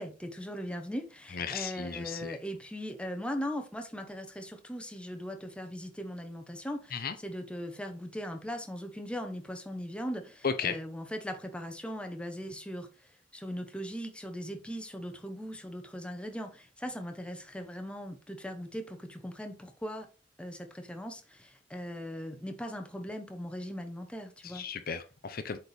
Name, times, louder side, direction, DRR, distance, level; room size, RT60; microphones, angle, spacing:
voice 1, 0.0-20.1 20.4-24.7, equal, 5° left, 1.0 m, -39 dB
voice 2, 1.3-2.4 6.9-7.1 10.4-10.8 24.4-25.6, left 6 dB, 50° left, 0.7 m, -35 dB
8.0 x 4.4 x 3.4 m
head